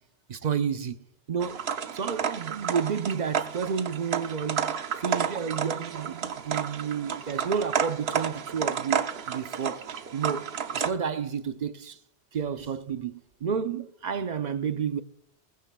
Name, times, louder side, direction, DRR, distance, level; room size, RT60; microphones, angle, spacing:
voice 1, 0.3-0.9 1.3-1.6 1.9-9.8 10.1-12.0 12.3-15.0, right 7 dB, 50° right, 0.6 m, -31 dB
sound 1, 1.4-10.9, right 7 dB, 70° right, 1.0 m, -31 dB
20.0 x 15.0 x 2.3 m
omnidirectional pair, 1.1 m